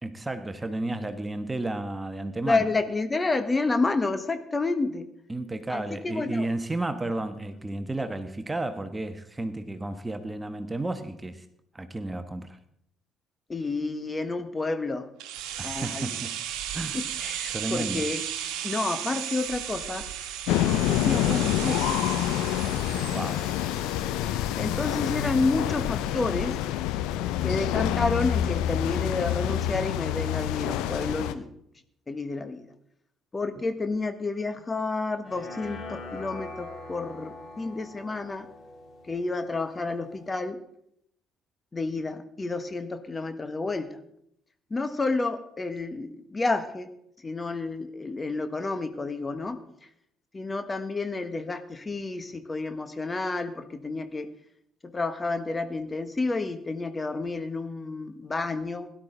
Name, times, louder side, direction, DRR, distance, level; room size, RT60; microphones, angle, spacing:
voice 1, 0.0-2.6 5.3-11.4 11.7-12.6 15.6-16.4 16.7-17.0 17.5-18.1 23.1-23.5, right 2 dB, 15° right, 9 dB, 1.3 m, -32 dB
voice 2, 2.4-5.1 5.7-6.5 13.5-15.1 15.6-16.2 16.9-18.2 18.6-20.1 20.5-22.0 24.2-26.5 27.4-31.5 32.1-32.6 33.3-38.5 39.1-40.6 41.7-44.0 44.7-46.9 47.2-49.6 50.3-54.3 54.8-58.9, left 3 dB, 25° left, 10 dB, 1.3 m, -30 dB
sound 1, 15.2-25.0 25.3-25.4, right 10 dB, 65° right, 1.3 m, -35 dB
sound 2, 20.5-31.3, left 12 dB, 65° left, 0.6 m, -27 dB
sound 3, 35.2-40.3, left 2 dB, 40° left, 7.0 m, -43 dB
17.5 x 11.5 x 3.9 m, 0.75 s
figure-of-eight pair, 50°, 0 cm